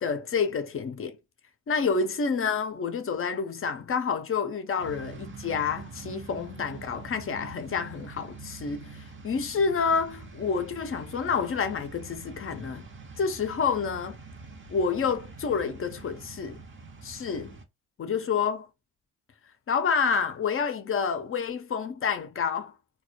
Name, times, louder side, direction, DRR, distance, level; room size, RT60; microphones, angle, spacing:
voice 1, 0.0-1.2 1.7-12.9 13.2-14.2 14.7-16.6 17.0-17.6 18.0-18.7 19.7-22.7, left 6 dB, 40° left, 0.5 m, -28 dB
sound 1, 4.8-17.6, right 4 dB, 35° right, 0.6 m, -45 dB
2.2 x 2.0 x 2.8 m
cardioid pair, 60°, 35 cm